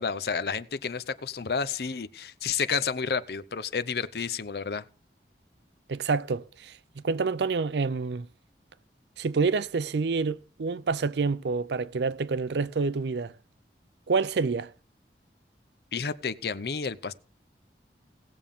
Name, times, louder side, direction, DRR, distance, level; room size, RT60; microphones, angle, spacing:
voice 1, 0.0-4.8 15.9-17.1, left 5 dB, 65° left, 0.6 m, -30 dB
voice 2, 5.9-6.7 7.0-8.3 9.2-13.3 14.1-14.7, right 4 dB, 80° right, 0.5 m, -27 dB
18.5 x 7.1 x 3.6 m
head